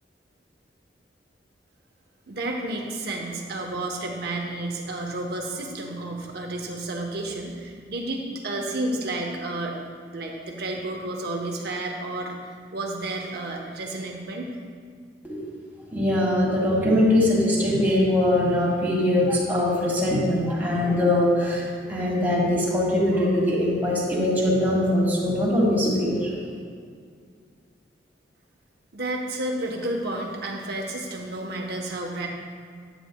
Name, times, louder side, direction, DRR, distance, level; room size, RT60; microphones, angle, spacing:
voice 1, 2.3-9.8 10.1-14.6 28.9-32.3, right 2 dB, 60° right, 1 dB, 1.0 m, -31 dB
voice 2, 15.9-26.3, left 1 dB, 10° right, -5 dB, 1.6 m, -22 dB
9.1 x 9.0 x 2.3 m, 2.1 s
head